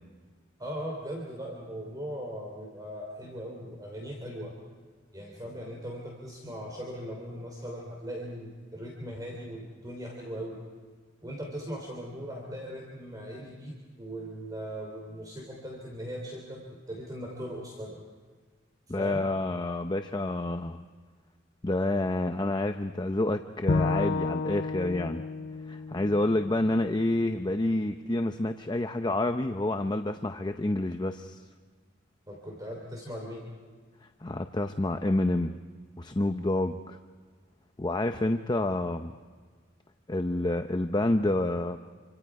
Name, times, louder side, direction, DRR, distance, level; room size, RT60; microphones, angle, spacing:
voice 1, 0.6-4.5 5.1-10.6 11.2-18.0 18.9-19.2 32.3-33.5, equal, 20° right, -1 dB, 3.3 m, -39 dB
voice 2, 18.9-20.8 21.6-25.2 25.7-31.4 34.2-35.6 36.0-37.0 37.8-39.1 40.1-41.8, left 1 dB, 20° left, 7 dB, 0.7 m, -28 dB
Bowed string instrument, 23.7-26.9, left 3 dB, 60° left, 0.7 m, -31 dB
27.0 x 26.0 x 4.8 m, 1.5 s
head